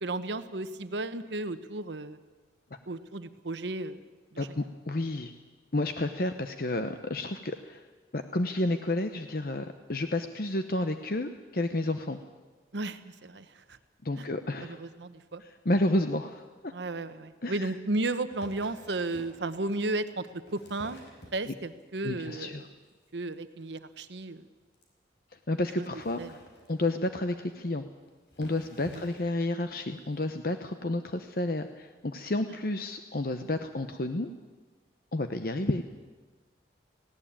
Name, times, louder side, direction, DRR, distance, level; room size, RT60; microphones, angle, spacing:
voice 1, 0.0-2.2 2.9-4.0 4.3-4.5 12.7-13.8 14.2-14.3 14.6-15.4 16.7-20.3 20.5-21.0 21.3-22.7 23.1-24.5 25.8-25.9 26.2-26.3 28.8-29.0, right 2 dB, 75° right, 11 dB, 1.0 m, -34 dB
voice 2, 4.4-5.3 5.7-7.8 8.1-12.2 14.0-14.8 15.4-16.7 17.4-17.7 22.0-22.6 25.5-26.4 26.7-27.8 28.4-34.3 35.1-35.8, left 1 dB, 50° left, 8 dB, 0.8 m, -31 dB
sound 1, 18.3-19.4 20.2-21.8 22.2-22.6 22.9-23.1 23.3-23.4 23.6-23.7 24.0-24.1 24.7-24.8 25.8-27.1 27.9-28.0 28.3-29.4 30.1-30.2, left 1 dB, 75° left, 5.0 m, -51 dB
19.0 x 16.5 x 8.8 m, 1.3 s
head